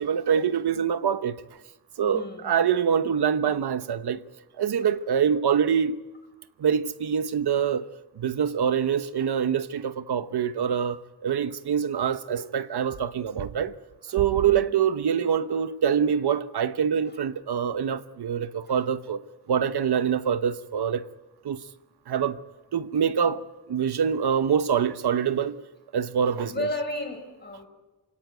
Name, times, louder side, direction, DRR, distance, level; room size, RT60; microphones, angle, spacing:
voice 1, 0.0-1.4 2.0-4.2 4.6-6.0 6.6-7.8 8.2-13.7 14.1-19.2 19.5-21.0 21.4-21.6 22.1-22.4 22.7-25.6 25.9-26.7, right 8 dB, 80° right, 1.1 m, -25 dB
voice 2, 2.1-2.5 4.8-5.0 7.5-7.6 14.1-14.2 14.5-14.8 17.1-17.2 18.7-18.9 26.4-27.7, left 1 dB, 25° left, 5.4 m, -34 dB
28.0 x 17.5 x 9.3 m
wide cardioid pair, 175°, 38 cm